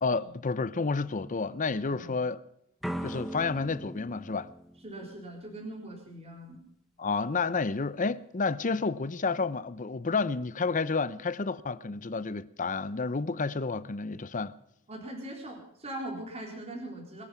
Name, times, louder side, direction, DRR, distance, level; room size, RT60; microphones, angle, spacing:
voice 1, 0.0-2.4 3.0-4.5 7.0-14.5, left 4 dB, 40° left, 0.7 m, -30 dB
voice 2, 1.8-2.2 4.8-6.6 14.9-17.2, right 1 dB, 30° right, 3.8 m, -41 dB
sound 1, 2.8-5.7, equal, ahead, 0.9 m, -39 dB
22.5 x 10.5 x 5.7 m
head